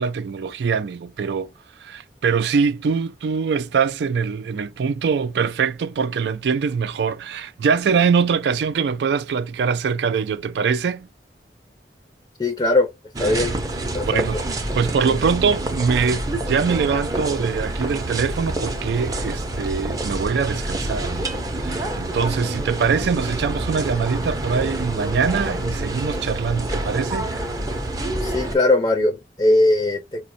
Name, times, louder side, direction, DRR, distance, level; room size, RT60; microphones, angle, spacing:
voice 1, 0.0-1.5 1.8-11.1 14.1-14.4 14.7-27.3, right 6 dB, 75° right, 0.3 m, -23 dB
voice 2, 12.4-12.9 13.2-13.5 13.9-14.4 28.2-30.3, left 2 dB, 25° left, 0.5 m, -20 dB
sound 1, 13.1-28.5, right 1 dB, 20° right, 0.5 m, -27 dB
4.9 x 2.1 x 2.6 m
head